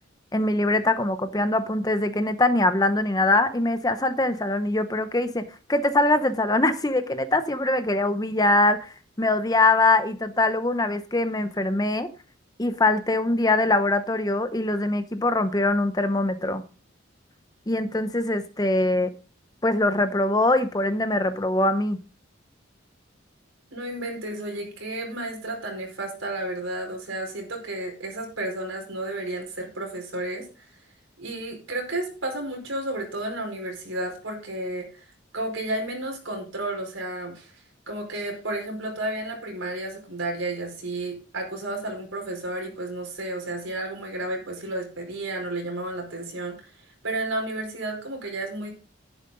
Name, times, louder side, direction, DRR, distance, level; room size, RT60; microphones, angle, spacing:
voice 1, 0.3-5.4 5.7-12.1 12.6-16.6 17.7-19.1 19.6-22.0, left 2 dB, 20° left, 10 dB, 0.7 m, -23 dB
voice 2, 23.7-30.8 31.2-35.1 35.3-37.6 37.9-48.7, right 2 dB, 85° right, 2 dB, 4.9 m, -32 dB
10.5 x 10.5 x 3.9 m, 0.37 s
head